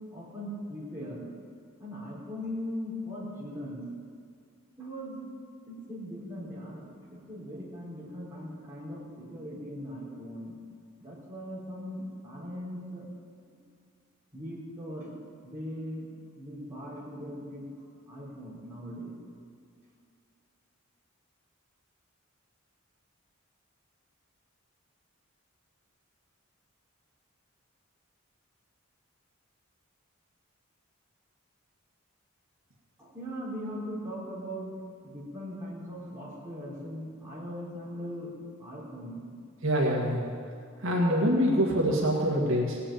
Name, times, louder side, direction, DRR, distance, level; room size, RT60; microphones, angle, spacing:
voice 1, 0.1-1.3 1.8-3.8 4.8-5.2 5.7-10.5 11.0-13.0 13.5-13.6 14.3-15.2 15.4-16.1 16.3-17.6 18.1-19.1 33.0-34.7 35.0-38.3 38.6-39.2, equal, 10° right, -8 dB, 4.3 m, -39 dB
voice 2, 39.6-40.2 40.8-42.8, equal, 65° right, -2 dB, 2.0 m, -25 dB
18.5 x 6.8 x 8.9 m, 2.2 s
head